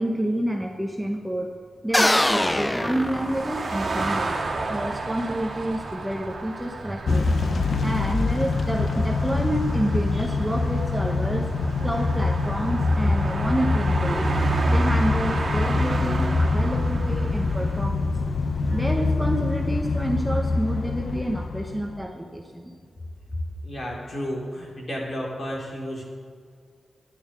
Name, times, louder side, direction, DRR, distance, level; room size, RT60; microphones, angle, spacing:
voice 1, 0.0-1.5 1.8-4.4 4.7-7.3 7.8-11.5 11.8-14.3 14.7-18.1 18.7-22.7, right 1 dB, 5° right, 2 dB, 1.1 m, -29 dB
sound 1, 1.9-3.9, left 1 dB, 10° left, 0.5 m, -23 dB
sound 2, 1.9-17.8, right 2 dB, 45° right, 2.6 m, -31 dB
Motor vehicle (road) / Engine starting / Accelerating revving vroom, 7.1-22.0, left 3 dB, 60° left, 0.8 m, -24 dB
voice 2, 23.6-26.0, equal, 40° left, -2 dB, 4.2 m, -32 dB
11.0 x 10.5 x 9.7 m, 2.1 s
wide cardioid pair, 130°, 0 cm